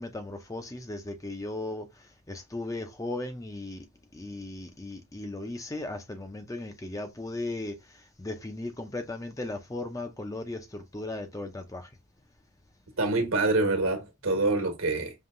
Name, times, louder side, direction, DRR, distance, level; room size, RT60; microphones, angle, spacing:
voice 1, 0.0-1.9 2.3-3.8 4.1-11.9, left 2 dB, 15° left, 0.5 m, -37 dB
voice 2, 13.0-15.1, right 2 dB, 75° right, 1.3 m, -26 dB
5.4 x 2.8 x 2.5 m
head